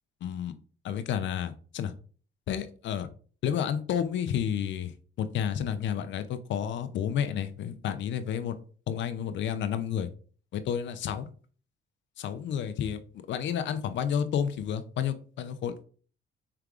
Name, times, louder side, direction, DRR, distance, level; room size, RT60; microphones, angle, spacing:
voice 1, 0.2-0.5 0.8-1.9 2.5-3.1 3.4-4.9 5.2-8.6 8.9-10.1 10.5-11.3 12.2-13.0 13.3-15.8, left 8 dB, 70° left, 11 dB, 0.5 m, -30 dB
4.7 x 3.4 x 2.4 m, 0.41 s
cardioid pair, 90°, 20 cm